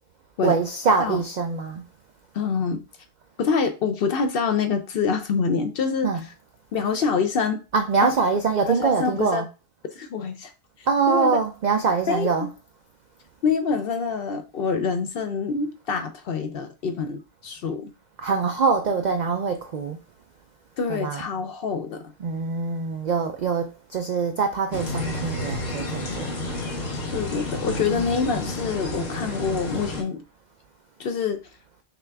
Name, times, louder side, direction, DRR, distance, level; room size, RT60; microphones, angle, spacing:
voice 1, 0.4-1.8 6.0-6.3 7.7-9.5 10.9-12.5 18.2-20.0 20.9-21.3 22.2-26.3 27.7-28.1, right 5 dB, 70° right, 0.4 m, -24 dB
voice 2, 2.3-2.8 3.4-6.1 6.7-7.6 8.0-8.1 8.7-9.4 9.9-10.5 10.8-11.4 12.1-12.5 13.4-17.9 20.8-22.1 27.1-30.2 31.0-31.4, left 5 dB, 60° left, 0.7 m, -26 dB
sound 1, 24.7-30.0, left 2 dB, 90° left, 1.6 m, -31 dB
5.9 x 2.4 x 3.3 m
omnidirectional pair, 1.3 m